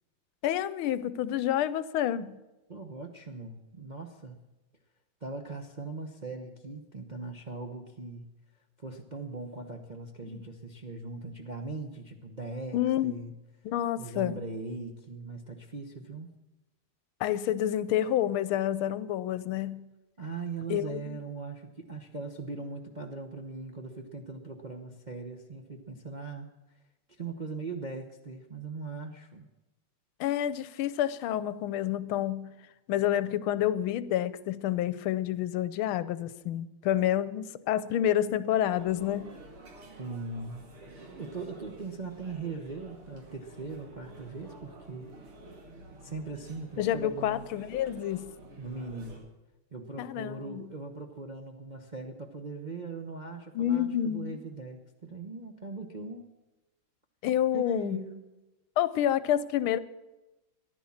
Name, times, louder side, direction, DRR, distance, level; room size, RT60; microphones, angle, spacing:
voice 1, 0.4-2.4 10.2-10.4 12.7-13.1 13.6-14.4 17.2-19.9 20.7-21.2 30.2-32.5 32.9-39.3 46.8-48.3 50.0-50.7 53.5-54.4 57.2-58.0 58.8-59.8, left 11 dB, 80° left, 16 dB, 1.5 m, -29 dB
voice 2, 2.7-4.4 5.2-8.3 8.8-13.3 14.0-16.3 20.2-26.8 27.1-29.5 39.8-40.7 41.2-45.1 46.0-47.5 48.6-49.2 49.7-56.3 57.5-58.2, right 3 dB, 45° right, 2 dB, 0.6 m, -40 dB
sound 1, 38.6-49.2, right 2 dB, 85° right, 3.1 m, -50 dB
14.5 x 11.0 x 7.2 m, 1.0 s
omnidirectional pair, 2.3 m